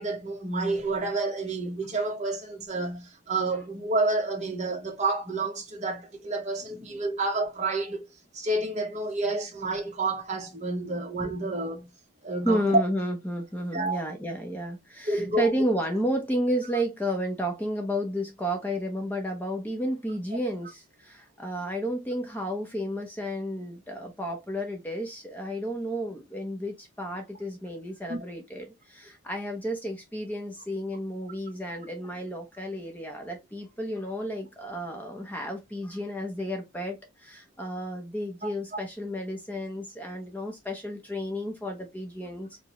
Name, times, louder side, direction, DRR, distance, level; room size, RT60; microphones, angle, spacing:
voice 1, 0.0-8.1 8.3-11.9 12.2-12.8 13.7-14.0 15.1-15.5 28.1-28.2 31.7-31.8, right 2 dB, 35° right, 1.0 m, -29 dB
voice 2, 12.4-42.5, equal, 10° left, 0.7 m, -32 dB
4.9 x 2.2 x 2.9 m
head